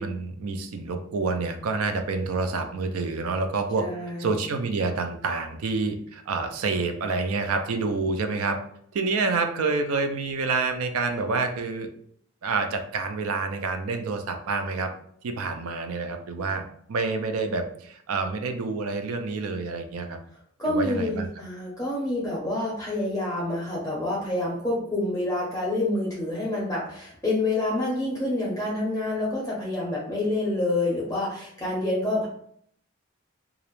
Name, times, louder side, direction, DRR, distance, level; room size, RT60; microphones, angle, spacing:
voice 1, 0.0-3.9 4.2-8.6 8.9-11.9 12.4-14.9 15.2-20.2 20.7-21.3, right 4 dB, 85° right, 6 dB, 0.4 m, -28 dB
voice 2, 3.8-4.4 20.6-32.3, left 2 dB, 15° left, -6 dB, 0.5 m, -27 dB
2.4 x 2.0 x 3.0 m, 0.65 s
head